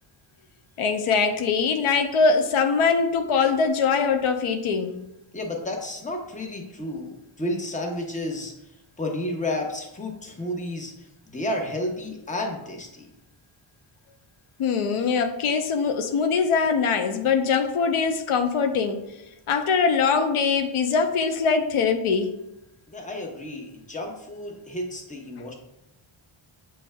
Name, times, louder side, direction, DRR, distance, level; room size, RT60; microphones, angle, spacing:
voice 1, 0.8-4.9 14.6-19.0 19.5-22.3, left 5 dB, 80° left, 7 dB, 0.6 m, -22 dB
voice 2, 5.3-8.5 9.0-13.1 22.9-25.5, left 1 dB, 15° left, 1 dB, 0.8 m, -31 dB
6.9 x 3.2 x 2.2 m, 0.87 s
wide cardioid pair, 90°, 50 cm